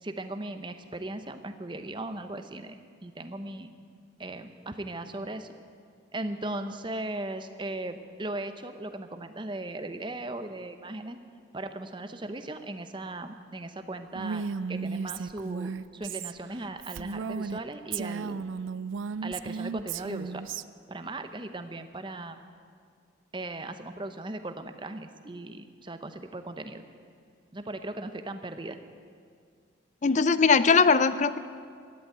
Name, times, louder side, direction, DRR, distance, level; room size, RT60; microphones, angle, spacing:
voice 1, 0.0-3.7 4.2-5.5 6.1-11.2 11.5-14.4 14.7-18.4 19.2-20.4 20.9-22.4 23.3-26.8 27.5-28.8, right 2 dB, 25° right, 8 dB, 0.8 m, -37 dB
Female speech woman speaking, 14.1-17.6 17.9-20.6, right 5 dB, 85° right, 0.4 m, -34 dB
voice 2, 30.0-31.4, left 5 dB, 40° left, 14 dB, 0.5 m, -20 dB
13.5 x 11.0 x 8.9 m, 2.1 s
head